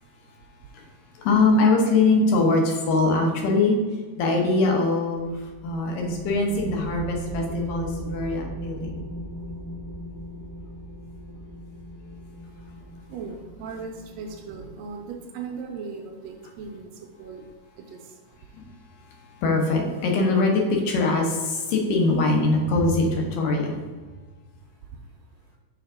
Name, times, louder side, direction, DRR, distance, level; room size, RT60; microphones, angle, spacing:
voice 1, 0.2-0.9 12.5-18.2, right 5 dB, 80° right, 3 dB, 1.5 m, -39 dB
voice 2, 1.1-3.8 4.2-9.0 18.5-18.7 19.0-23.8, left 3 dB, 90° left, 1 dB, 2.8 m, -22 dB
sound 1, 5.1-15.1, right 1 dB, 35° left, 0.8 m, -37 dB
5.8 x 4.7 x 4.9 m, 1.3 s
omnidirectional pair, 3.7 m